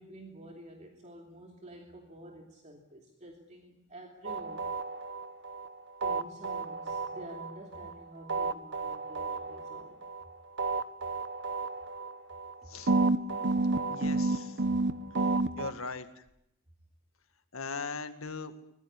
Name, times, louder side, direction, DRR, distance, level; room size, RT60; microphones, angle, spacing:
voice 1, 0.0-4.7 6.0-10.0, right 1 dB, 35° right, 2 dB, 2.8 m, -49 dB
sound 1, 4.3-5.7 6.0-7.9 8.3-10.2 10.6-12.5 12.9-15.7, right 3 dB, 60° right, 1.3 m, -31 dB
voice 2, 13.9-14.6 15.6-16.2 17.5-18.5, left 4 dB, 80° left, 9 dB, 2.1 m, -39 dB
23.5 x 20.5 x 9.8 m, 0.79 s
head